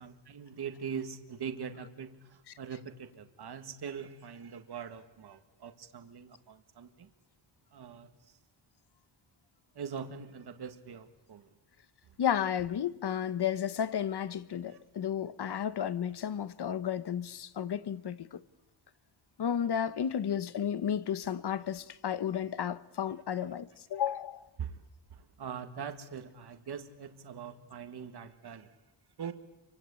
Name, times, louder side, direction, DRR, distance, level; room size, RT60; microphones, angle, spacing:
voice 1, 0.0-7.1 7.7-8.1 9.8-11.5 24.6-24.8 25.4-28.7 29.2-29.3, right 7 dB, 50° right, 1.9 m, -42 dB
voice 2, 12.2-18.4 19.4-24.5, left 9 dB, 55° left, 1.1 m, -33 dB
28.5 x 24.5 x 8.5 m
wide cardioid pair, 175°, 48 cm